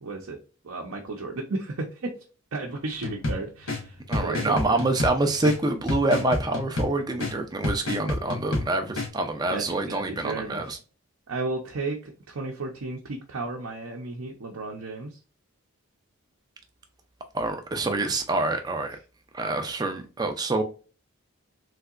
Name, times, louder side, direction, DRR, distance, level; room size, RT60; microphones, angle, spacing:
voice 1, 0.0-0.4 0.6-2.1 2.5-4.7 9.5-10.6 11.3-15.1, right 3 dB, 70° right, 0.6 m, -33 dB
sound 1, 3.0-9.1, left 2 dB, 65° left, 1.3 m, -31 dB
voice 2, 4.1-10.8 17.3-19.0 19.3-20.6, right 2 dB, 20° right, 0.4 m, -26 dB
3.3 x 2.8 x 2.4 m
head